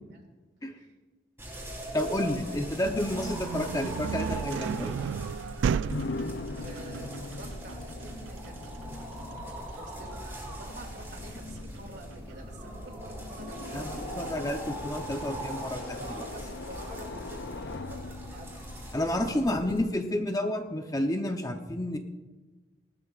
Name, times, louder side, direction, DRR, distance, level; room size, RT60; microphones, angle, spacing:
sound 1, 1.4-19.9, right 1 dB, 10° right, 3.6 m, -41 dB
voice 1, 1.9-4.9 13.7-16.0 18.9-22.0, left 1 dB, 20° left, 5 dB, 0.7 m, -30 dB
sound 2, 2.7-12.5, right 6 dB, 80° right, 0.3 m, -35 dB
sound 3, 5.8-19.7, left 3 dB, 65° left, 0.5 m, -42 dB
voice 2, 6.6-14.0 16.0-18.7 18.9-19.3 19.6-19.9, right 1 dB, 65° right, 3 dB, 2.4 m, -47 dB
19.5 x 13.0 x 2.4 m, 1.2 s
head